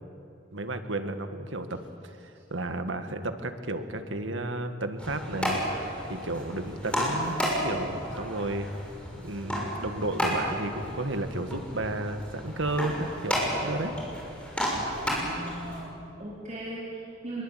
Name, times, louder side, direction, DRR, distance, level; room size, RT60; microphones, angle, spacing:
voice 1, 0.5-8.7 9.2-14.0, right 2 dB, 85° right, 8 dB, 1.9 m, -33 dB
sound 1, 5.0-15.8, equal, 5° left, 6.5 m, -32 dB
voice 2, 15.2-17.4, right 1 dB, 40° right, -6 dB, 4.3 m, -38 dB
26.5 x 22.5 x 9.3 m, 2.7 s
head